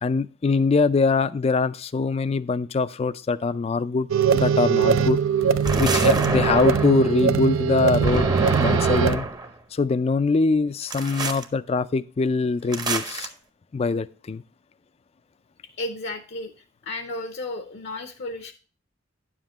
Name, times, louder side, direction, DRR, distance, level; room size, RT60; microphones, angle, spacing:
voice 1, 0.0-5.2 5.8-8.3 8.6-9.3 9.7-13.3 13.7-14.4, left 4 dB, 30° left, 0.3 m, -23 dB
sound 1, 4.1-9.2, right 7 dB, 75° right, 0.4 m, -21 dB
sound 2, 5.6-7.1 8.0-9.5 10.9-11.5 12.7-13.3, right 2 dB, 20° right, 0.7 m, -26 dB
voice 2, 15.6-16.5 16.8-18.5, left 2 dB, 55° left, 0.7 m, -33 dB
9.8 x 7.3 x 2.9 m
head